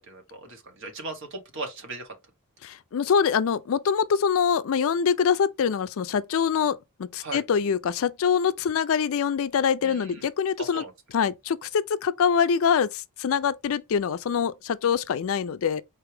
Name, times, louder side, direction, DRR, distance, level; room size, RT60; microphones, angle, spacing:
voice 1, 0.1-2.1 7.2-7.4 9.8-10.3 10.6-10.9, right 3 dB, 60° right, 1.4 m, -38 dB
voice 2, 2.6-10.8 11.1-15.8, left 7 dB, 65° left, 0.4 m, -24 dB
4.3 x 3.4 x 3.3 m
head